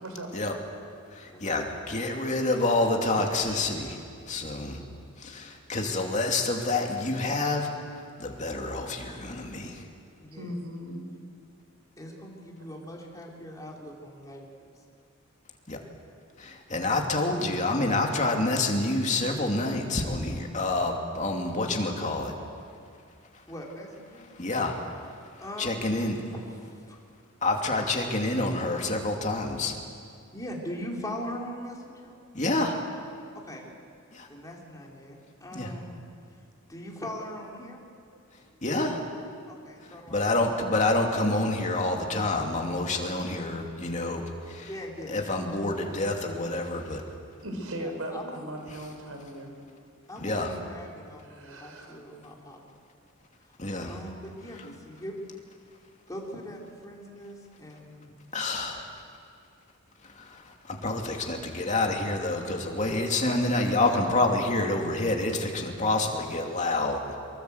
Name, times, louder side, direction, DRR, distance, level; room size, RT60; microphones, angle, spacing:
voice 1, 0.0-0.3 3.1-3.6 9.3-9.4 10.3-11.2 47.4-49.5 51.2-52.0, right 1 dB, 85° right, 4 dB, 4.5 m, -38 dB
voice 2, 1.1-4.8 5.2-7.7 8.2-9.8 15.7-15.8 16.4-22.3 24.3-24.9 25.6-26.2 27.4-29.7 32.3-32.8 34.1-34.3 35.5-35.7 38.6-39.0 39.9-44.7 45.1-47.0 50.2-50.5 53.6-54.0 58.3-58.9 60.0-67.2, left 2 dB, 35° left, 2 dB, 2.7 m, -28 dB
voice 3, 10.2-10.5 12.0-14.4 23.5-24.2 25.4-27.0 30.3-32.1 33.3-33.7 34.3-36.0 36.7-37.8 39.5-40.3 44.6-45.1 47.8-48.5 50.1-52.6 53.9-55.2 56.1-58.1, equal, 15° left, -2 dB, 3.3 m, -41 dB
24.0 x 22.5 x 8.1 m, 2.3 s
head